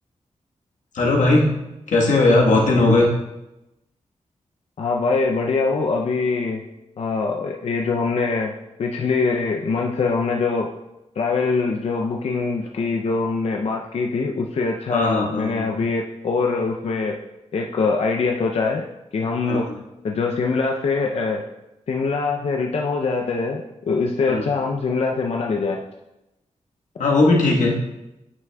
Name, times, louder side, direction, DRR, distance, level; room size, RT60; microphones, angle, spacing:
voice 1, 0.9-1.5 1.9-3.1 14.9-15.8 19.5-19.6 24.3-24.4 27.0-27.8, left 2 dB, 85° left, -2 dB, 1.3 m, -18 dB
voice 2, 4.8-6.6 7.0-8.5 8.8-10.7 11.2-17.1 17.5-18.9 19.1-19.7 20.0-21.4 21.9-25.8, left 4 dB, 55° left, 0 dB, 0.5 m, -23 dB
9.2 x 6.0 x 2.3 m, 0.94 s
wide cardioid pair, 170°, 13 cm